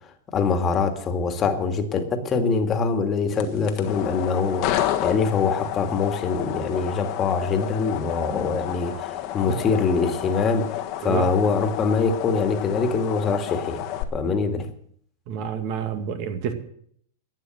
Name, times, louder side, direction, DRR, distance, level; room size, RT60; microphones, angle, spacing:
voice 1, 0.3-13.9 14.1-14.7, left 5 dB, 25° left, 7 dB, 2.0 m, -24 dB
sound 1, 3.3-14.0, left 12 dB, 45° left, 1.5 m, -31 dB
voice 2, 15.3-16.5, right 7 dB, 50° right, 7 dB, 2.2 m, -29 dB
12.0 x 8.9 x 9.1 m, 0.65 s
hypercardioid pair, 120°, 0 cm